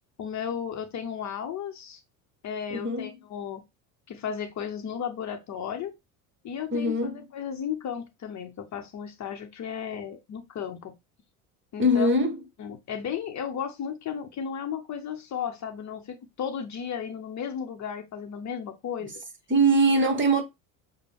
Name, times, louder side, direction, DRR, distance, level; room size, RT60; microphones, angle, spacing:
voice 1, 0.2-2.0 2.4-3.6 4.1-5.9 6.4-10.9 11.7-12.1 12.6-19.2, left 8 dB, 40° left, 0.9 m, -34 dB
voice 2, 2.7-3.1 6.7-7.2 11.8-12.4 19.5-20.4, right 1 dB, 25° right, 1.3 m, -22 dB
6.5 x 2.3 x 3.4 m
hypercardioid pair, 75°, 45 cm